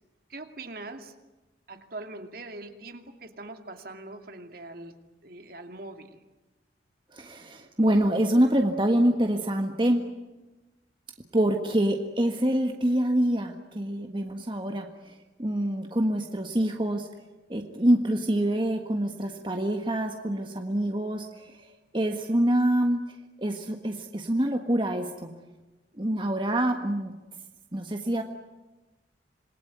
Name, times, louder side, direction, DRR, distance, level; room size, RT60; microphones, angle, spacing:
voice 1, 0.3-1.1 1.7-4.9 5.2-6.2, right 2 dB, 55° right, 6 dB, 2.5 m, -42 dB
voice 2, 7.1-10.0 11.3-17.1 17.5-21.6 21.9-23.0 23.4-25.3 26.0-27.1 27.7-28.2, right 1 dB, 25° right, 4 dB, 1.6 m, -26 dB
27.0 x 20.5 x 9.5 m, 1.1 s
head